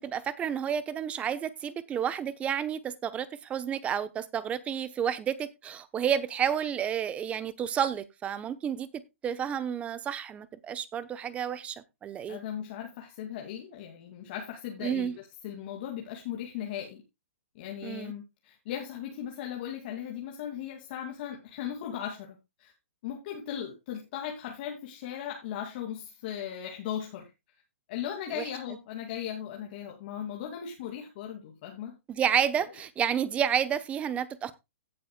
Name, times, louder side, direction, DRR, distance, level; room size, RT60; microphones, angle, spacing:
voice 1, 0.0-8.9 9.2-12.4 14.8-15.2 17.8-18.1 28.4-28.5 32.1-34.5, right 8 dB, 15° right, 0.9 m, -30 dB
voice 2, 12.3-17.0 17.5-22.7 23.0-27.3 27.9-32.0 32.6-32.7, left 9 dB, 45° left, 2.5 m, -38 dB
17.0 x 7.6 x 2.3 m
hypercardioid pair, 140°, 7 cm